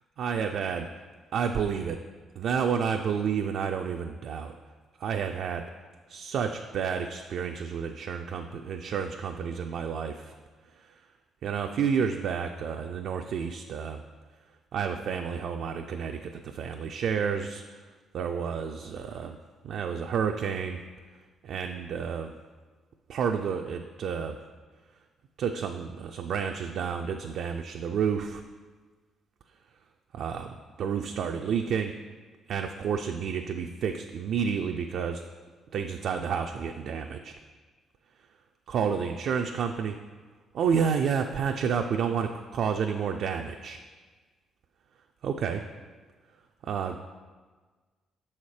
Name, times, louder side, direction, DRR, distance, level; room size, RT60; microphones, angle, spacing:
voice 1, 0.2-0.9 1.3-2.0 2.4-4.5 5.0-5.7 6.1-10.3 11.4-14.0 14.7-17.6 18.1-19.4 19.6-20.8 21.4-22.3 23.1-24.4 25.4-28.4 30.1-31.9 32.5-35.2 35.7-37.3 38.7-40.0 40.5-43.8 45.2-45.6 46.7-47.0, right 7 dB, 70° right, 4 dB, 0.3 m, -30 dB
6.4 x 4.3 x 4.8 m, 1.4 s
cardioid pair, 90°, 0 cm